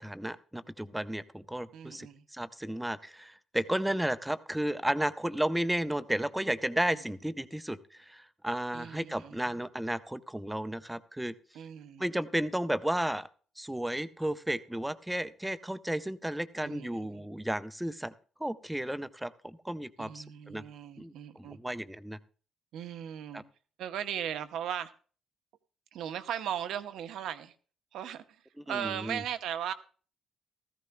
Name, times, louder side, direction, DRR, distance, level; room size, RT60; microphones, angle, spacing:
voice 1, 0.0-2.1 2.3-11.3 12.0-13.3 13.6-18.1 18.4-20.6 21.0-22.2 23.3-23.4 28.7-29.2, right 1 dB, 5° right, 12 dB, 0.5 m, -33 dB
voice 2, 1.7-2.2 6.9-7.0 8.7-9.6 11.5-12.0 16.6-17.2 20.0-21.6 22.7-23.4 23.8-24.9 25.9-27.5 27.9-28.4 28.7-29.7, right 9 dB, 80° right, 10 dB, 0.7 m, -37 dB
16.0 x 14.0 x 2.2 m, 0.40 s
cardioid pair, 90°, 0 cm